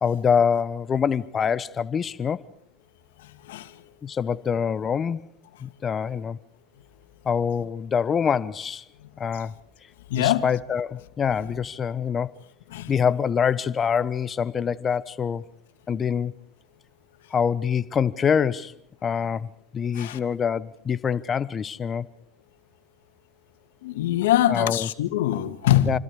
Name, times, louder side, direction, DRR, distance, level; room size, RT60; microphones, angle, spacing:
voice 1, 0.0-2.4 4.0-5.2 5.6-6.4 7.2-8.8 9.2-9.5 10.1-12.3 12.9-15.5 15.9-16.3 17.3-18.7 19.0-22.1 24.5-24.9 25.9-26.0, left 7 dB, 30° left, 1.0 m, -25 dB
voice 2, 10.1-10.5 12.7-12.9 19.9-20.2 23.8-26.0, left 12 dB, 80° left, 2.2 m, -23 dB
28.5 x 26.0 x 4.9 m
hypercardioid pair, 100°, 0 cm